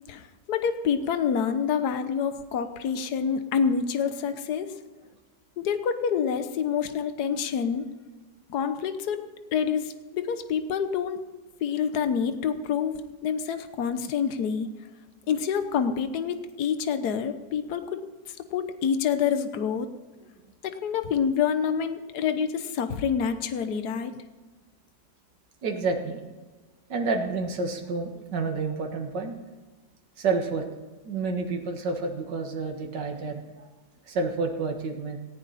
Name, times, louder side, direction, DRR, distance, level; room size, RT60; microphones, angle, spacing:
voice 1, 0.1-4.7 5.6-7.9 8.5-11.2 11.6-14.7 15.3-19.9 20.6-24.2, left 7 dB, 65° left, 9 dB, 1.5 m, -27 dB
voice 2, 25.6-26.2 26.9-29.4 30.2-30.6 31.0-33.7 34.0-35.2, right 4 dB, 75° right, 3 dB, 2.3 m, -29 dB
18.5 x 14.5 x 4.2 m, 1.3 s
omnidirectional pair, 1.9 m